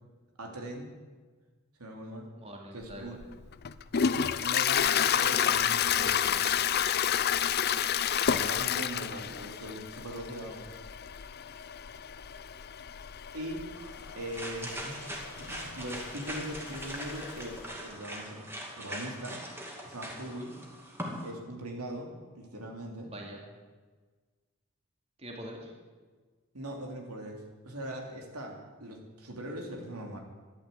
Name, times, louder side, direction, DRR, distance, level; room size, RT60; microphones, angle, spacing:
voice 1, 0.4-0.9 1.8-2.3 2.7-3.2 4.0-6.4 8.3-10.7 13.3-13.7 14.2-18.5 18.7-19.4 19.8-20.5 21.2-23.1 26.5-30.2, right 1 dB, 85° right, 2 dB, 2.9 m, -41 dB
voice 2, 2.4-3.1 8.2-8.6 23.0-23.4 25.2-25.7, right 1 dB, 30° right, 0 dB, 2.5 m, -44 dB
Toilet flush, 2.9-17.6, left 8 dB, 45° left, 0.5 m, -31 dB
sound 1, 13.7-21.3, equal, 10° right, 2.4 m, -41 dB
13.5 x 11.5 x 8.3 m, 1.4 s
head